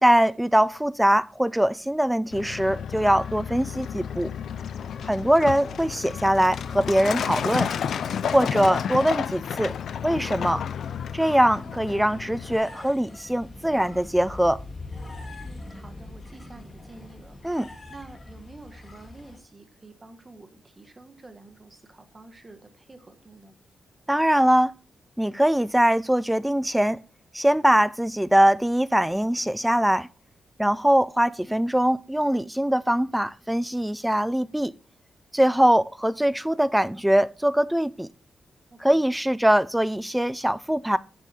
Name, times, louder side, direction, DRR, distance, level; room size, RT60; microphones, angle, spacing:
voice 1, 0.0-4.3 5.0-7.7 8.3-9.7 10.0-10.6 11.1-14.6 17.4-17.7 24.1-24.7 25.2-27.0 27.3-30.1 30.6-34.7 35.3-38.1 38.8-41.0, right 1 dB, 5° right, 0.3 m, -22 dB
Truck, 2.3-12.6, left 8 dB, 65° left, 0.4 m, -31 dB
sound 1, 10.6-19.4, left 2 dB, 30° left, 2.0 m, -43 dB
voice 2, 15.4-23.5 38.7-39.0, right 3 dB, 20° right, 1.2 m, -49 dB
8.7 x 6.4 x 4.2 m
wide cardioid pair, 155°, 0 cm